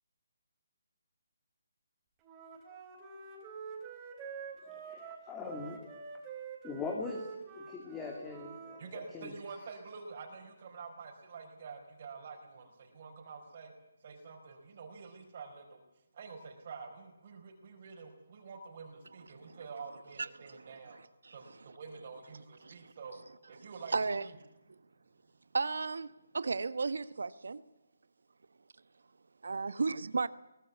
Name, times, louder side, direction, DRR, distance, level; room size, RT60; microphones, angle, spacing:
Wind instrument woodwind instrument, 2.2-8.8, right 5 dB, 15° right, 4.2 m, -47 dB
voice 1, 4.9-5.8 6.6-7.3 7.6-9.3, left 4 dB, 10° left, 2.4 m, -41 dB
voice 2, 8.8-13.7 14.0-15.8 16.1-21.0 21.3-23.2 23.5-23.9, right 5 dB, 40° right, 4.8 m, -48 dB
voice 3, 20.2-21.8 22.6-22.9 23.6-24.3 25.5-27.6 29.4-30.3, right 4 dB, 75° right, 1.2 m, -35 dB
22.5 x 19.0 x 8.4 m
hypercardioid pair, 165°, 0 cm